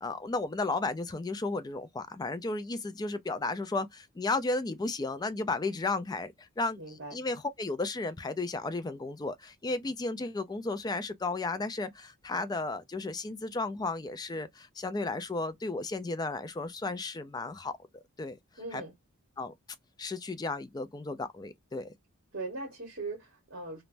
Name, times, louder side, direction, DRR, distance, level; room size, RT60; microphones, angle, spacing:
voice 1, 0.0-17.7 18.2-18.4 18.7-18.8 19.4-19.5 20.0-21.9, left 3 dB, 20° left, 0.3 m, -34 dB
voice 2, 6.8-7.2 18.6-18.9 22.3-23.8, right 3 dB, 55° right, 1.1 m, -39 dB
3.2 x 2.0 x 2.5 m
head